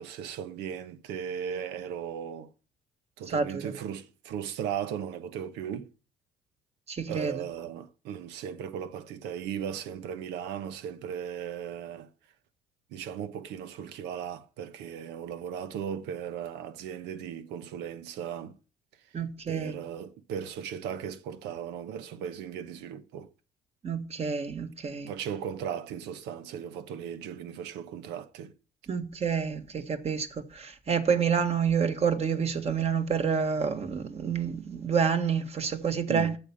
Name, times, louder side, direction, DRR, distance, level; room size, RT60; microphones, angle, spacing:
voice 1, 0.0-2.5 3.2-5.9 7.1-12.1 12.9-18.6 19.5-23.3 25.1-28.5 36.1-36.4, right 8 dB, 90° right, 1.1 m, -37 dB
voice 2, 3.3-3.7 6.9-7.3 19.1-19.8 23.8-25.1 28.9-36.3, right 6 dB, 40° right, 1.7 m, -28 dB
9.0 x 7.0 x 8.7 m
cardioid pair, 110°, 17 cm